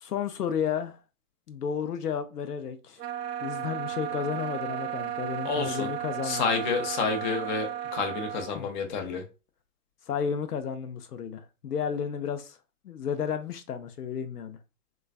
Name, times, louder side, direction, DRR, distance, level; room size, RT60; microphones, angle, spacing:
voice 1, 0.0-1.0 1.5-3.0 3.4-6.5 8.5-8.7 10.1-12.6 12.8-14.6, left 7 dB, 85° left, 0.6 m, -32 dB
sound 1, 3.0-8.5, right 11 dB, 85° right, 0.5 m, -34 dB
voice 2, 5.4-5.9 6.2-9.2, left 5 dB, 30° left, 0.6 m, -29 dB
3.8 x 2.4 x 2.3 m
hypercardioid pair, 125°, 46 cm